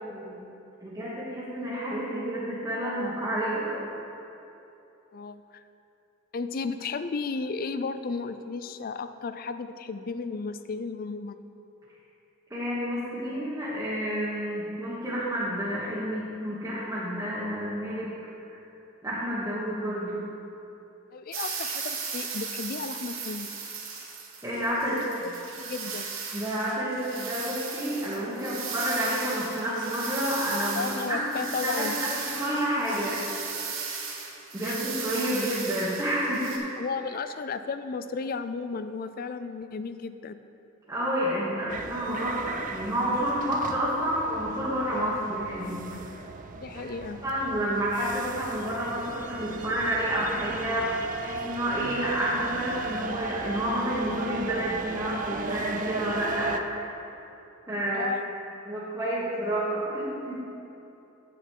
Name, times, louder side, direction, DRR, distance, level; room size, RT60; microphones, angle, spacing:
voice 1, 0.0-0.4 0.8-3.8 12.5-18.1 18.5-18.6 19.0-20.3 24.4-25.3 26.3-31.9 32.4-33.4 34.5-36.6 40.9-46.2 47.2-57.1 57.7-58.1 58.6-60.4, equal, 15° right, -10 dB, 1.4 m, -29 dB
voice 2, 5.1-5.6 6.3-11.4 21.1-23.5 24.8-26.1 30.8-32.0 34.6-34.8 36.8-40.4 46.5-47.2 57.9-58.3, left 4 dB, 45° left, 11 dB, 0.4 m, -34 dB
sound 1, 21.3-36.6, right 5 dB, 70° right, 1.5 m, -36 dB
sound 2, 41.7-56.6, right 4 dB, 40° right, 0.4 m, -37 dB
9.0 x 8.2 x 4.6 m, 2.9 s
head